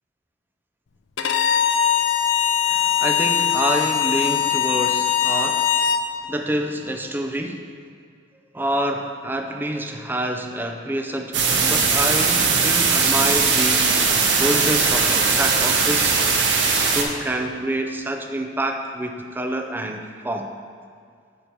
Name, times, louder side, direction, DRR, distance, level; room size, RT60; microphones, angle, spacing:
Bowed string instrument, 1.2-6.1, left 8 dB, 75° left, 0.4 m, -21 dB
voice 1, 2.6-5.7 6.3-7.6 8.5-13.9 14.4-16.3 16.9-20.5, right 1 dB, 10° right, 4 dB, 0.4 m, -27 dB
sound 1, 11.3-17.0, right 5 dB, 65° right, 0.7 m, -19 dB
6.7 x 4.1 x 4.4 m, 2.1 s
head